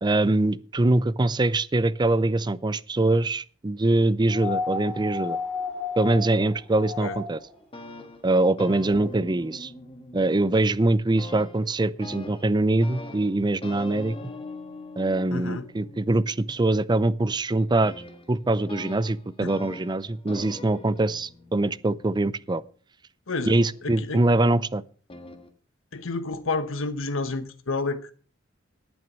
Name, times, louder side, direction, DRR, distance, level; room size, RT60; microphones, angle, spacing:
voice 1, 0.0-5.4 6.0-7.4 8.2-9.7 10.1-14.2 15.0-17.9 18.3-22.6 23.5-24.8, right 2 dB, 20° right, 0.5 m, -23 dB
sound 1, 4.3-7.5 8.9-9.0, left 4 dB, 5° left, 3.1 m, -32 dB
sound 2, 7.5-10.8 11.2-22.7 23.6-24.4 25.1-25.5, left 2 dB, 30° left, 1.5 m, -43 dB
voice 2, 15.3-15.7 19.4-19.5 23.3-24.2 25.9-28.1, left 3 dB, 80° left, 1.1 m, -30 dB
10.5 x 9.1 x 6.1 m
head